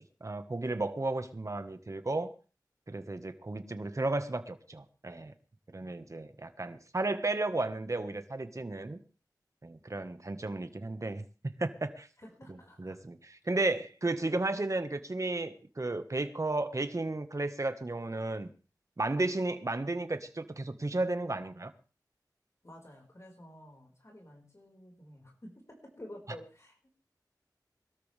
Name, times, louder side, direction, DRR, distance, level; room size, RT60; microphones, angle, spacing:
voice 1, 0.2-2.3 2.9-5.3 5.7-9.0 9.6-12.1 12.8-18.5 19.0-21.7, right 2 dB, 45° right, 9 dB, 1.5 m, -33 dB
voice 2, 12.2-13.0 22.6-26.8, left 1 dB, 40° left, 0 dB, 5.3 m, -51 dB
21.5 x 13.0 x 3.5 m, 0.36 s
wide cardioid pair, 50°, 7 cm